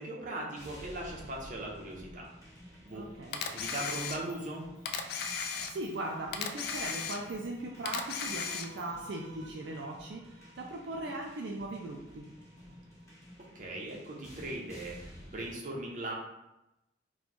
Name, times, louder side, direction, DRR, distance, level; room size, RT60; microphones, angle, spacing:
voice 1, 0.0-2.3 2.8-3.0 3.4-4.7 13.5-16.1, right 1 dB, 45° right, -2 dB, 0.7 m, -39 dB
sound 1, 0.6-15.5, equal, 15° left, 0.8 m, -52 dB
voice 2, 2.9-3.4 5.4-12.3, right 2 dB, 70° right, 0 dB, 0.4 m, -39 dB
Camera, 3.3-4.5 4.9-6.0 6.3-7.5 7.9-8.9, left 6 dB, 55° left, 0.3 m, -36 dB
3.0 x 2.2 x 4.1 m, 0.93 s
head